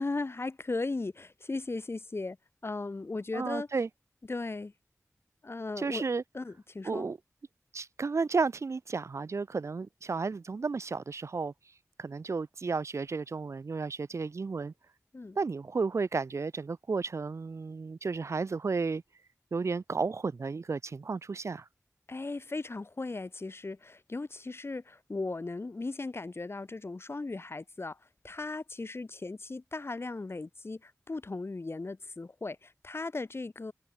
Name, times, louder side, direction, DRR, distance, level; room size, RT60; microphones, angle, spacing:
voice 1, 0.0-2.4 2.6-3.7 4.3-4.7 5.4-6.0 6.3-7.1 15.1-15.4 22.1-28.0 28.2-33.7, left 3 dB, 50° left, 0.7 m, -37 dB
voice 2, 3.3-3.9 5.8-6.2 6.8-7.2 7.7-11.5 12.0-14.7 15.4-19.0 19.5-21.6, right 4 dB, 60° right, 0.3 m, -32 dB
wide cardioid pair, 70°, 6 cm